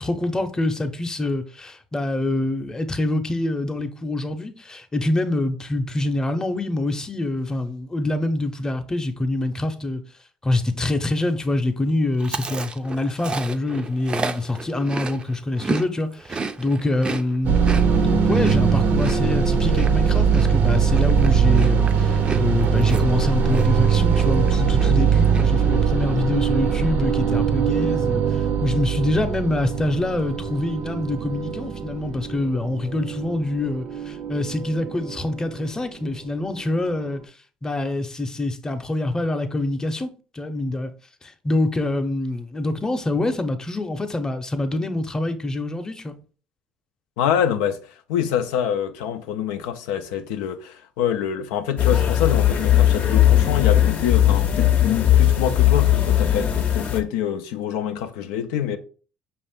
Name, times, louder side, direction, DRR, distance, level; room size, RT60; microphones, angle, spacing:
voice 1, 0.0-10.0 10.4-37.2 37.6-40.9 41.2-46.2, left 2 dB, 20° left, 0.7 m, -25 dB
Chewing mastication, 12.2-15.9 16.1-23.9 24.1-24.5 24.7-25.4, right 4 dB, 30° right, 0.4 m, -32 dB
sound 1, 17.4-35.8, right 6 dB, 70° right, 0.6 m, -21 dB
voice 2, 47.2-47.8 48.1-58.8, left 9 dB, 90° left, 0.4 m, -25 dB
sound 2, 51.8-57.0, left 11 dB, 55° left, 0.6 m, -18 dB
5.4 x 2.5 x 3.5 m
supercardioid pair, 70°, 3 cm